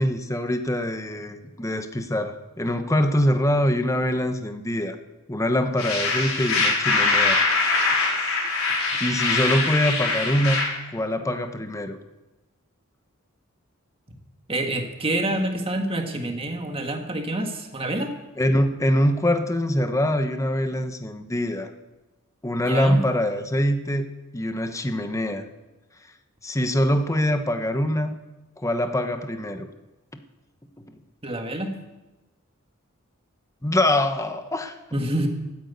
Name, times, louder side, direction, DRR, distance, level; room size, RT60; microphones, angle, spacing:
voice 1, 0.0-5.0 5.3-7.4 9.0-10.6 10.9-12.0 18.4-21.7 22.4-25.5 26.4-28.1 28.6-29.7 30.8-30.9 33.6-34.8, left 1 dB, 15° left, 8 dB, 1.0 m, -24 dB
sound 1, 5.8-10.6, left 3 dB, 85° left, 4.6 m, -23 dB
voice 2, 14.5-18.1 22.6-23.0 31.2-31.7 34.9-35.3, right 1 dB, 25° right, 4 dB, 1.7 m, -27 dB
13.5 x 9.3 x 8.4 m, 1.1 s
head